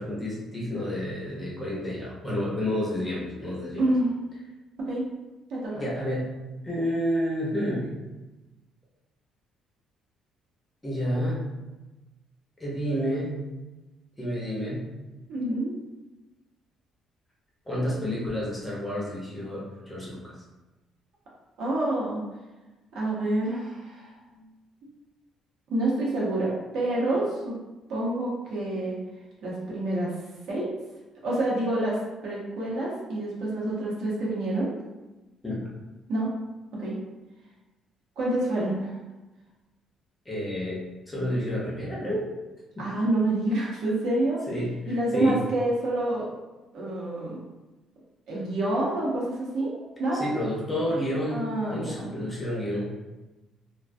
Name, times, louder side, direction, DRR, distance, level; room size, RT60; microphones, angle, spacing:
voice 1, 0.0-3.9 5.7-6.3 6.6-7.9 10.8-11.4 12.6-13.3 14.2-14.9 17.7-20.3 35.4-35.6 40.3-40.8 41.1-42.3 42.7-42.9 44.5-45.4 50.1-52.9, equal, 10° left, -6 dB, 0.6 m, -30 dB
voice 2, 3.8-4.2 4.9-5.0 5.5-5.7 15.3-15.7 21.6-22.2 22.9-24.5 25.7-27.6 27.9-28.9 29.4-30.1 30.5-30.7 31.2-32.0 32.2-34.7 36.1-36.3 36.7-37.0 38.2-38.9 42.8-44.4 44.8-46.3 46.7-47.4 48.3-49.7 50.0-50.4 51.3-52.1, right 1 dB, 65° right, -5 dB, 0.8 m, -27 dB
2.3 x 2.2 x 2.5 m, 1.1 s
cardioid pair, 160°, 0 cm